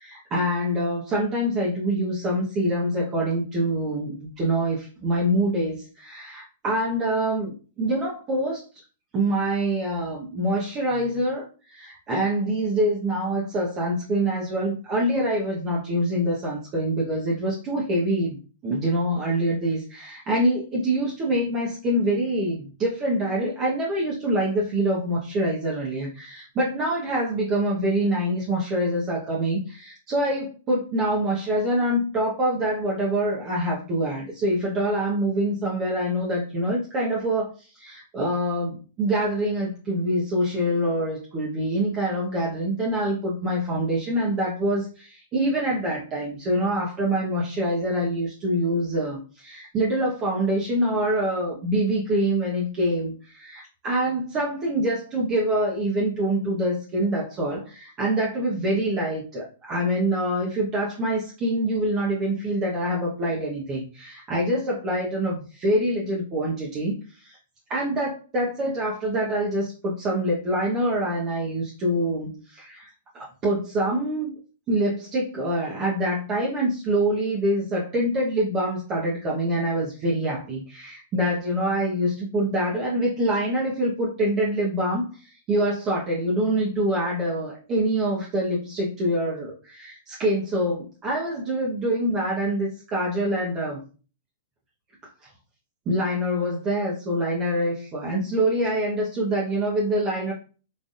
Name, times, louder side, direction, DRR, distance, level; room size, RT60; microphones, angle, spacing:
voice 1, 0.0-8.6 9.1-18.4 18.6-67.4 67.7-72.9 73.1-74.3 74.7-93.8 95.9-100.3, right 1 dB, 30° right, -4 dB, 1.1 m, -25 dB
4.1 x 3.4 x 2.5 m, 0.36 s
hypercardioid pair, 130°, 0 cm